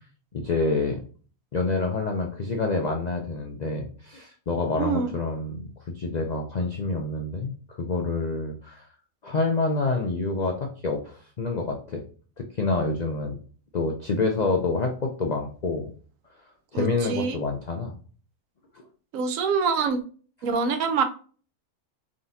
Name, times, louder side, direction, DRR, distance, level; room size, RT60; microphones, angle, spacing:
voice 1, 0.3-1.0 1.5-5.7 5.9-8.9 9.2-12.0 12.4-13.4 13.7-15.9 16.7-17.9, left 3 dB, 65° left, 2 dB, 0.4 m, -27 dB
voice 2, 4.8-5.1 16.7-17.4 19.1-20.0 20.4-21.0, right 5 dB, 70° right, 8 dB, 1.0 m, -25 dB
4.2 x 3.7 x 2.6 m, 0.41 s
omnidirectional pair, 1.5 m